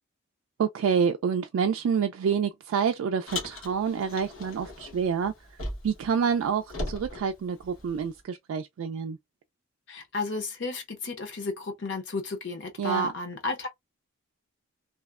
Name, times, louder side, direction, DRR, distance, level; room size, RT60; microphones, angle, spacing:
voice 1, 0.6-5.3 5.8-9.2 12.8-13.1, right 6 dB, 80° right, 0.3 m, -27 dB
Car, 3.3-6.1 6.3-8.1, left 2 dB, 85° left, 1.0 m, -38 dB
voice 2, 9.9-13.7, left 2 dB, 60° left, 0.7 m, -32 dB
2.7 x 2.1 x 2.3 m
head